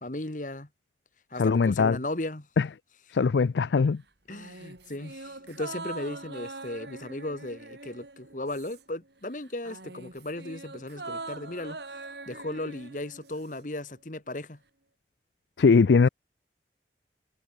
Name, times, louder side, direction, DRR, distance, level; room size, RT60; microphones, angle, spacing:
voice 1, 0.0-0.7 1.3-2.5 4.3-14.6, left 1 dB, 45° left, 1.6 m, -36 dB
voice 2, 1.4-2.0 2.6-2.7 3.1-4.0 15.6-16.1, left 5 dB, 75° left, 0.4 m, -21 dB
sound 1, 4.3-9.1 9.3-13.6 13.9-14.0, right 3 dB, 70° right, 4.5 m, -43 dB
head